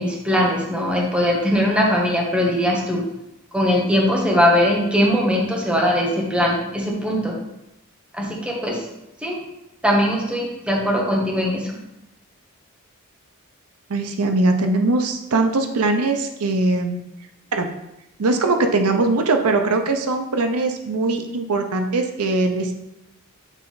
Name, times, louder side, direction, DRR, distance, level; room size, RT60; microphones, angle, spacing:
voice 1, 0.0-3.0 3.5-7.3 8.1-8.9 9.2-9.4 9.8-11.8, equal, 5° right, -2 dB, 1.0 m, -20 dB
voice 2, 13.9-17.0 17.5-17.7 18.2-22.7, right 2 dB, 90° right, 5 dB, 0.6 m, -21 dB
7.3 x 3.3 x 3.9 m, 0.89 s
head